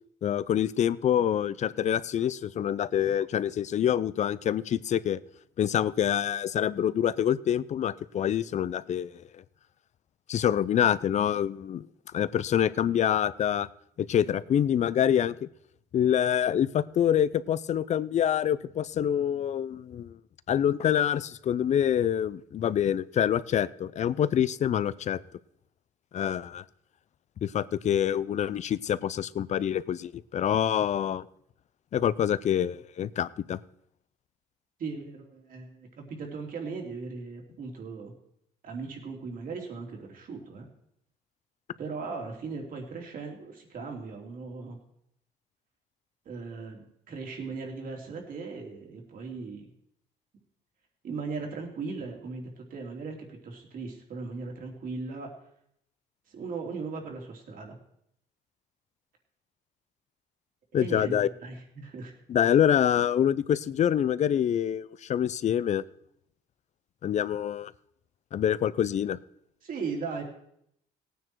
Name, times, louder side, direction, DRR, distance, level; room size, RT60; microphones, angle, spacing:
voice 1, 0.2-5.2 5.6-9.2 10.3-11.9 12.1-13.7 14.0-15.5 15.9-20.2 20.5-25.2 26.1-26.6 27.4-31.2 31.9-33.6 60.7-61.3 62.3-65.8 67.0-67.7 68.3-69.2, left 9 dB, 45° left, 18 dB, 0.5 m, -26 dB
voice 2, 34.8-38.1 38.6-40.7 41.8-44.8 46.2-49.7 51.0-55.3 56.3-57.7 60.7-61.1 61.4-62.1 69.6-70.2, right 4 dB, 55° right, 1 dB, 3.2 m, -38 dB
17.5 x 9.2 x 4.6 m, 0.73 s
cardioid pair, 110°, 17 cm